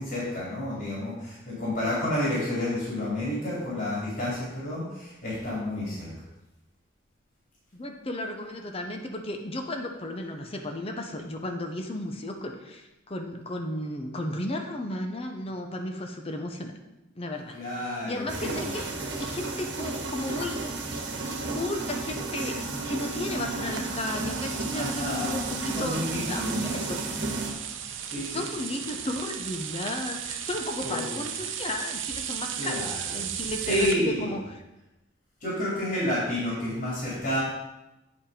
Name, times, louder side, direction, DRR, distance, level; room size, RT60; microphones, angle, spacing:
voice 1, 0.0-6.1 17.5-18.7 24.7-25.4 25.7-26.8 28.0-28.4 30.8-31.1 32.5-33.2 33.6-34.4 35.4-37.4, left 1 dB, 50° left, -7 dB, 3.1 m, -30 dB
voice 2, 7.7-16.7 17.2-18.9 19.2-20.6 21.2-27.3 28.3-34.6, left 1 dB, 30° left, 4 dB, 0.8 m, -34 dB
sound 1, 18.3-27.5, right 3 dB, 65° right, 1.3 m, -33 dB
sound 2, 23.7-33.9, right 9 dB, 80° right, 0.7 m, -36 dB
8.5 x 5.3 x 5.0 m, 0.96 s
head